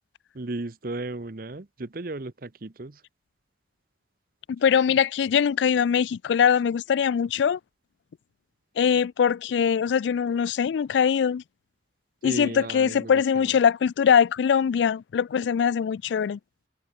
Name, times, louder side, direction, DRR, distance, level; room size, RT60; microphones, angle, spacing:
voice 1, 0.3-3.0 12.2-13.5, right 2 dB, 55° right, 0.9 m, -35 dB
voice 2, 4.5-7.6 8.8-11.4 12.2-16.4, left 7 dB, 85° left, 0.3 m, -22 dB
head